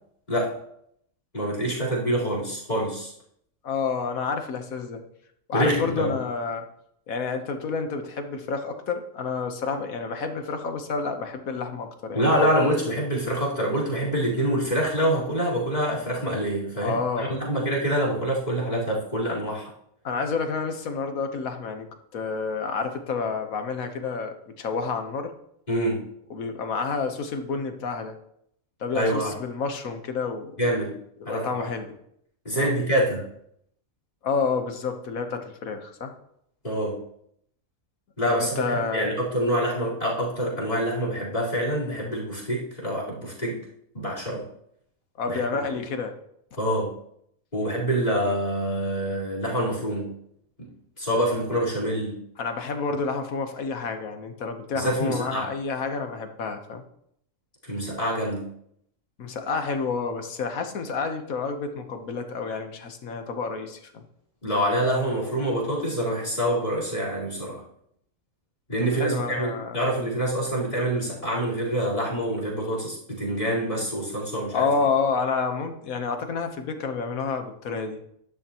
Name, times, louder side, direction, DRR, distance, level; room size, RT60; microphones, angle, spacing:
voice 1, 0.3-0.6 1.3-3.1 5.5-6.1 12.1-19.7 25.7-26.0 28.9-29.3 30.6-30.9 31.3-31.7 32.4-33.3 36.6-37.0 38.2-43.6 43.9-44.5 45.3-45.4 46.6-46.9 47.5-50.1 50.6-50.7 51.0-52.2 54.7-55.5 57.6-58.5 64.4-67.6 68.7-74.7, equal, 30° left, -7 dB, 4.4 m, -26 dB
voice 2, 3.6-5.0 5.5-6.6 7.1-12.5 16.8-17.4 20.0-25.3 26.3-28.1 28.8-30.6 31.2-32.0 32.5-32.7 34.2-36.1 38.3-39.1 45.2-46.1 52.4-56.8 59.2-64.0 68.9-69.8 74.5-78.0, left 5 dB, 85° left, 6 dB, 1.6 m, -29 dB
12.5 x 11.5 x 3.0 m, 0.72 s
omnidirectional pair, 1.4 m